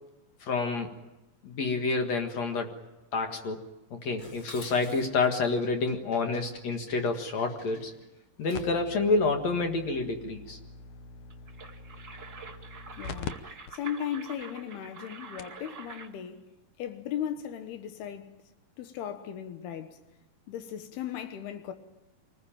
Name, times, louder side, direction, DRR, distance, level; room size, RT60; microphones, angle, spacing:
voice 1, 0.4-0.9 1.4-2.7 3.1-7.9 8.4-10.6, left 3 dB, 50° left, 2.6 m, -28 dB
Dishes pots and pans, 4.2-8.9, left 2 dB, 30° left, 2.4 m, -51 dB
sound 1, 8.5-13.3 13.7-13.8 14.4-14.5 15.1-15.2 15.4-15.6 16.9-17.0, left 5 dB, 70° left, 1.8 m, -43 dB
sound 2, 11.3-16.2, right 5 dB, 80° right, 0.7 m, -46 dB
voice 2, 13.0-16.5 16.8-18.3 18.8-20.0 20.5-21.7, left 9 dB, 90° left, 3.2 m, -37 dB
26.0 x 20.0 x 9.0 m
omnidirectional pair, 4.4 m